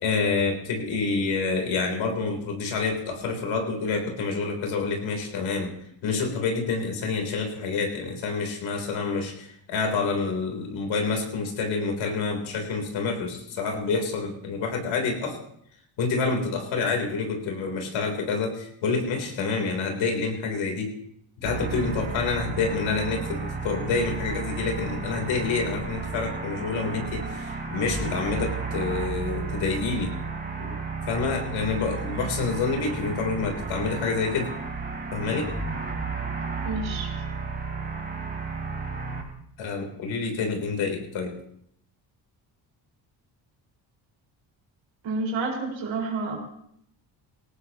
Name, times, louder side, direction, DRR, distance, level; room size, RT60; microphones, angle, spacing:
voice 1, 0.0-5.7 6.0-15.4 16.0-20.9 21.4-30.1 30.6-30.8 31.1-34.5 35.1-35.5 39.6-41.3, left 4 dB, 85° left, 2 dB, 3.5 m, -28 dB
sound 1, 21.4-39.2, right 4 dB, 25° right, 4.7 m, -33 dB
voice 2, 36.6-37.1 45.0-46.4, right 3 dB, 80° right, -1 dB, 4.9 m, -29 dB
19.5 x 17.5 x 2.9 m, 0.70 s
cardioid pair, 95°, 45 cm